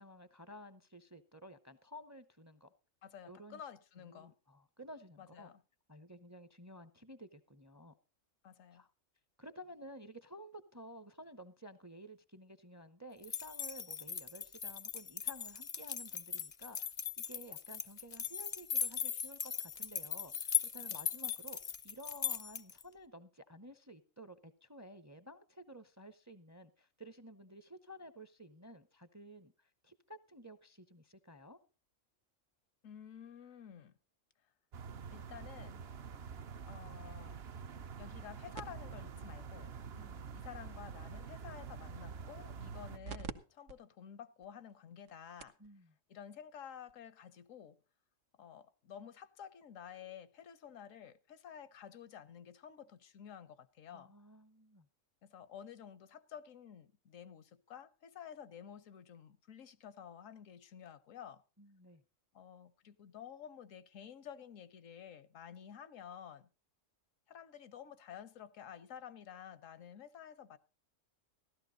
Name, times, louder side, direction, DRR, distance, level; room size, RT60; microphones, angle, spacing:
voice 1, 0.0-2.7 3.3-3.6 4.0-5.5 5.9-7.9 8.7-8.9 9.4-16.9 17.2-31.6 39.9-40.2 45.6-45.9 53.9-54.9 61.6-62.0, equal, 20° right, 0.6 m, -53 dB
voice 2, 3.0-4.3 5.2-5.6 8.4-8.9 20.9-21.0 32.8-33.9 35.1-35.9 36.7-37.4 38.0-39.7 40.3-45.6 46.1-47.8 48.4-54.1 55.2-61.4 62.3-66.5 67.3-70.6, left 8 dB, 80° left, 1.2 m, -51 dB
sound 1, 13.2-22.8, left 8 dB, 35° left, 0.6 m, -39 dB
sound 2, 34.7-43.0, right 6 dB, 55° right, 1.0 m, -47 dB
sound 3, 38.6-43.3 43.7-43.8 44.4-44.5 45.1-45.2 45.4-45.7 46.9-47.0, right 5 dB, 75° right, 1.3 m, -49 dB
15.5 x 12.5 x 3.9 m
omnidirectional pair, 1.3 m